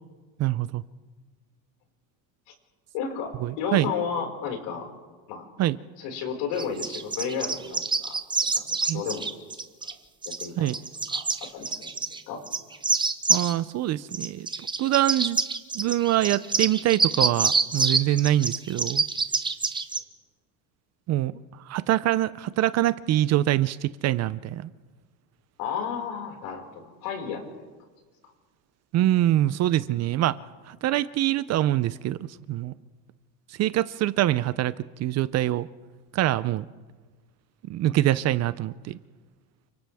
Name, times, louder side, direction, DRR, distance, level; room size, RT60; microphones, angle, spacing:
voice 1, 0.4-0.8 3.4-3.9 5.6-5.8 8.9-9.0 10.6-10.8 13.3-14.5 14.8-15.4 15.7-19.0 21.1-21.4 21.7-24.7 28.9-30.4 30.7-32.7 33.6-34.7 35.0-35.7 36.1-36.6 37.7-39.0, right 14 dB, 40° right, 16 dB, 0.5 m, -24 dB
voice 2, 2.9-4.9 5.3-5.4 6.0-8.1 8.5-9.6 10.3-10.7 11.1-11.9 12.3-12.4 25.6-27.6, left 6 dB, 75° left, 1 dB, 5.4 m, -33 dB
sound 1, 6.6-9.9 10.2-12.2 12.4-13.5 14.1-20.0, right 4 dB, 10° right, 0.8 m, -26 dB
29.5 x 25.5 x 3.5 m, 1.4 s
cardioid pair, 140°, 43 cm